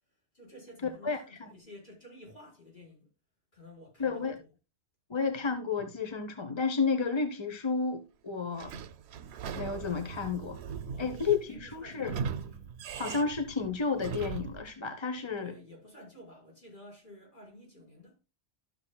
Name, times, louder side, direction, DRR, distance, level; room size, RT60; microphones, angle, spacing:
voice 1, 0.3-3.1 3.5-4.5 10.7-12.7 15.2-18.2, left 1 dB, 45° left, 4.7 m, -52 dB
voice 2, 1.0-1.5 4.0-4.4 5.1-8.7 9.6-10.6 11.0-12.2 13.0-15.5, left 5 dB, 30° left, 0.8 m, -31 dB
Sliding door / Squeak, 8.5-14.7, right 6 dB, 75° right, 0.9 m, -39 dB
13.0 x 6.3 x 2.2 m
omnidirectional pair, 1.1 m